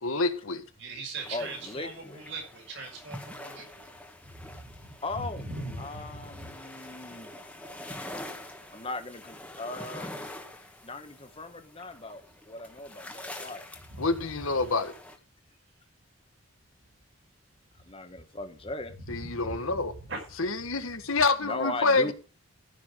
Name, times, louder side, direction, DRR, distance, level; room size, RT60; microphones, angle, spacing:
voice 1, 0.0-0.6 14.0-14.9 19.1-19.9 20.4-22.1, left 3 dB, 80° left, 1.5 m, -27 dB
voice 2, 0.8-3.9 4.3-6.5 13.9-14.3 19.0-20.3, right 2 dB, 60° right, 5.4 m, -40 dB
sound 1, 1.2-15.2, left 1 dB, 5° left, 1.5 m, -45 dB
voice 3, 1.3-2.2 5.0-5.5 5.8-7.3 8.7-10.3 10.8-12.2 12.5-13.6 17.9-18.9 21.4-22.1, left 2 dB, 25° left, 1.4 m, -38 dB
14.5 x 6.1 x 6.4 m
head